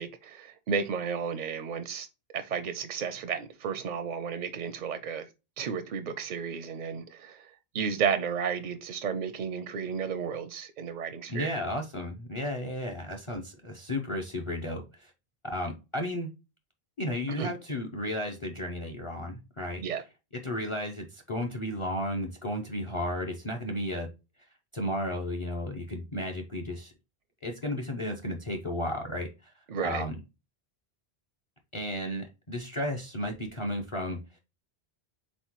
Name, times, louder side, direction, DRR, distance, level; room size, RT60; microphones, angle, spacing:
voice 1, 0.0-2.1 2.3-5.3 5.6-11.5 17.4-17.5 19.8-20.0 29.7-30.0, right 6 dB, 55° right, 0.5 m, -33 dB
voice 2, 11.3-15.1 15.4-16.3 17.0-19.8 20.4-24.1 24.7-26.9 27.4-29.5 29.8-30.2 31.7-34.2, left 1 dB, 35° left, 0.6 m, -33 dB
4.2 x 3.7 x 2.9 m
omnidirectional pair, 1.1 m